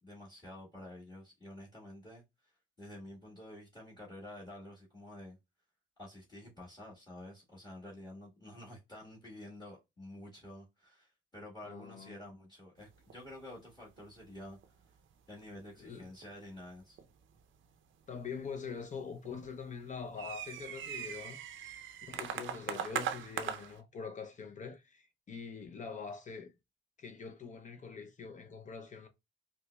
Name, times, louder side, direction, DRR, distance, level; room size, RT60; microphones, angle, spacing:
voice 1, 0.0-5.4 6.0-14.6 15.3-17.0, left 1 dB, 20° left, 1.5 m, -50 dB
voice 2, 11.6-12.2 15.8-16.1 18.1-21.4 22.1-26.5 27.0-29.1, left 5 dB, 40° left, 0.6 m, -44 dB
sound 1, 12.8-13.3 13.5-13.7 14.0-14.2 14.5-14.9 15.1-15.7 16.2-16.3 17.0-17.4 18.1-19.0 19.2-23.8, right 9 dB, 75° right, 0.6 m, -40 dB
5.1 x 2.1 x 2.2 m
cardioid pair, 90°, 20 cm